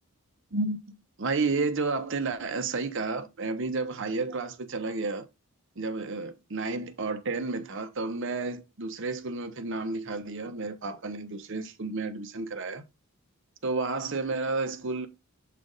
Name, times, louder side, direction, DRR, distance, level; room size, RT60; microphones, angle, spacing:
voice 1, 1.2-5.3 5.8-12.8 13.6-15.1, right 3 dB, 55° right, 0.8 m, -31 dB
7.5 x 3.4 x 3.9 m
head